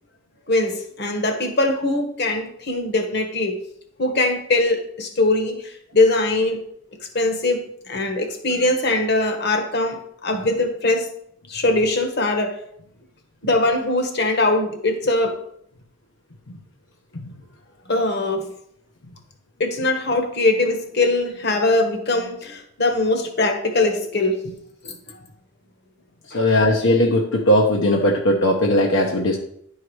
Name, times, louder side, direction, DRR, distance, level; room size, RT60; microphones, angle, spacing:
voice 1, 0.5-3.5 4.0-6.6 7.1-11.1 11.5-12.6 13.4-15.4 17.9-18.5 19.6-24.4 24.8-24.9 26.3-26.4, left 2 dB, 55° left, 5 dB, 1.4 m, -21 dB
voice 2, 26.3-29.4, left 1 dB, 75° left, 1 dB, 0.9 m, -18 dB
10.5 x 4.7 x 4.7 m, 0.70 s
head